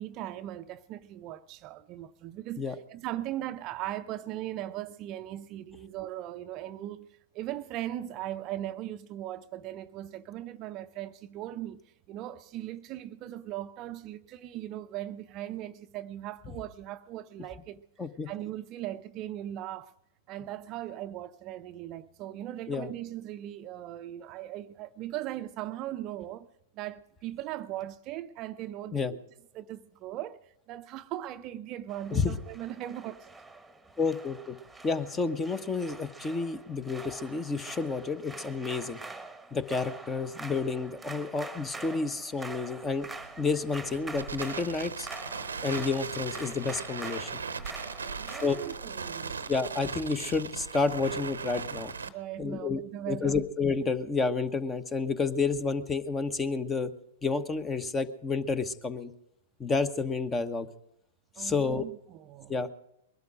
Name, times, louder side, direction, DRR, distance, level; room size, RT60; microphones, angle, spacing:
voice 1, 0.0-7.1 7.3-11.8 12.1-17.8 18.3-19.9 20.3-26.5 26.7-29.2 29.5-33.3 48.2-49.5 52.1-53.4 61.4-62.5, right 13 dB, 40° right, 0.6 m, -39 dB
voice 2, 18.0-18.3 22.7-22.9 28.9-29.1 32.1-32.3 34.0-34.6 34.8-39.0 39.5-43.1 43.4-45.1 45.6-47.3 48.4-48.6 49.5-51.9 52.4-52.8 53.1-56.9 57.2-59.1 59.6-60.7 61.4-61.9 62.5-62.7, left 4 dB, 15° left, 1.1 m, -30 dB
sound 1, 31.9-48.8, right 3 dB, 5° right, 1.4 m, -45 dB
Crackle, 42.8-52.1, right 5 dB, 85° right, 0.8 m, -39 dB
21.5 x 12.0 x 5.0 m
hypercardioid pair, 105°, 0 cm